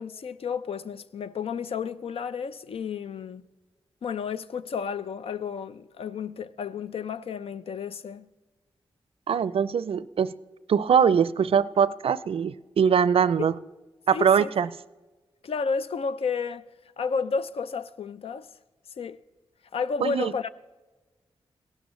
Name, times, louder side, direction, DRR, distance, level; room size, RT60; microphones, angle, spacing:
voice 1, 0.0-3.4 4.0-8.3 13.4-13.5 14.1-14.5 15.4-16.6 17.0-18.5 19.0-19.2 19.7-20.5, left 5 dB, 70° left, 0.5 m, -31 dB
voice 2, 9.3-10.3 10.7-13.5 14.1-14.7 20.0-20.3, right 7 dB, 65° right, 0.4 m, -22 dB
16.0 x 12.0 x 3.1 m
cardioid pair, 45°, 10 cm